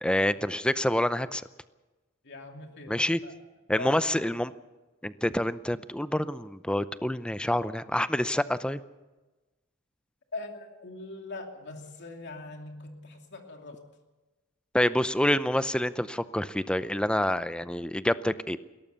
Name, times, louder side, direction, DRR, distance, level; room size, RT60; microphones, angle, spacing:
voice 1, 0.0-1.4 2.9-3.2 3.7-4.5 5.0-8.8 14.7-18.6, left 1 dB, 5° left, 14 dB, 0.6 m, -27 dB
voice 2, 2.2-3.3 3.7-4.4 10.3-13.8, left 2 dB, 55° left, 3 dB, 2.8 m, -42 dB
21.5 x 17.5 x 6.9 m, 1.1 s
head